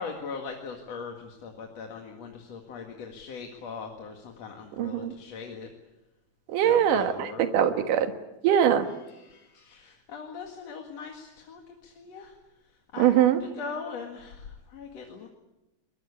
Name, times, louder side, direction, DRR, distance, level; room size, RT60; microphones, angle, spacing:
voice 1, 0.0-5.7 6.6-7.5 8.9-12.3 12.9-15.3, left 5 dB, 55° left, 2 dB, 2.9 m, -40 dB
voice 2, 4.8-5.1 6.5-8.1 8.4-8.8 13.0-13.4, right 9 dB, 80° right, 8 dB, 3.1 m, -22 dB
23.0 x 20.5 x 9.8 m, 0.99 s
omnidirectional pair, 3.7 m